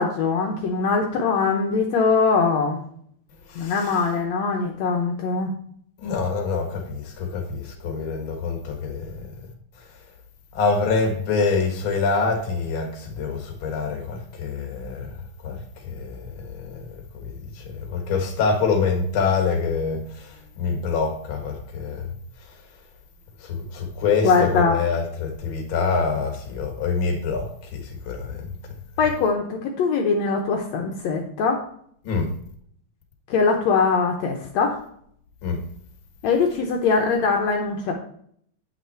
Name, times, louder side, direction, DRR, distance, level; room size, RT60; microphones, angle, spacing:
voice 1, 0.0-2.8 3.6-5.5 24.2-24.8 29.0-31.6 33.3-34.8 36.2-37.9, left 4 dB, 70° left, 2.1 m, -22 dB
voice 2, 6.0-9.3 10.5-15.1 15.4-15.6 15.9-16.8 17.1-20.3 20.6-22.1 23.7-27.8 28.1-28.4 32.0-32.3 35.4-35.6, left 4 dB, 50° left, 2.1 m, -25 dB
9.1 x 5.9 x 4.4 m
omnidirectional pair, 3.3 m